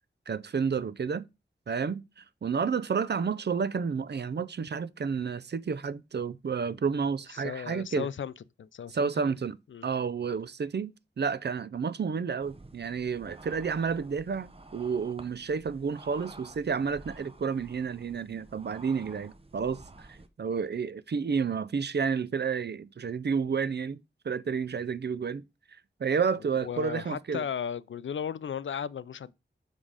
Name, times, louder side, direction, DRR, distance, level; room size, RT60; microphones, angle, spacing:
voice 1, 0.3-1.2 1.7-8.1 8.9-9.6 9.8-25.4 26.0-27.5, right 6 dB, 60° right, 0.5 m, -31 dB
voice 2, 7.3-8.3 8.6-9.3 9.7-9.9 26.6-29.3, left 8 dB, 75° left, 0.4 m, -35 dB
sound 1, 12.4-20.3, right 2 dB, 30° right, 0.9 m, -51 dB
7.2 x 3.7 x 4.8 m
wide cardioid pair, 65°, 20 cm